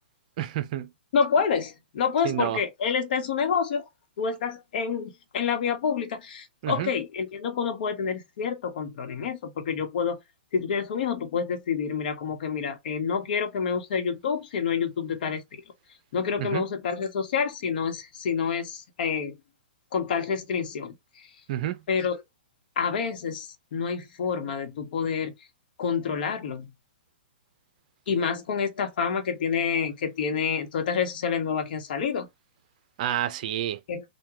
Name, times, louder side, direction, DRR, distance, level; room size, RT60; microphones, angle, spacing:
voice 1, 0.4-0.9 2.2-2.6 6.6-6.9 16.4-16.6 21.5-21.8 33.0-33.8, right 12 dB, 45° right, 0.6 m, -29 dB
voice 2, 1.1-3.9 4.2-10.2 10.5-15.6 16.1-19.3 19.9-20.9 21.9-22.2 22.8-25.3 25.8-26.7 28.1-32.3 33.9-34.0, left 6 dB, 55° left, 1.0 m, -28 dB
3.5 x 2.3 x 3.0 m
hypercardioid pair, 145°, 6 cm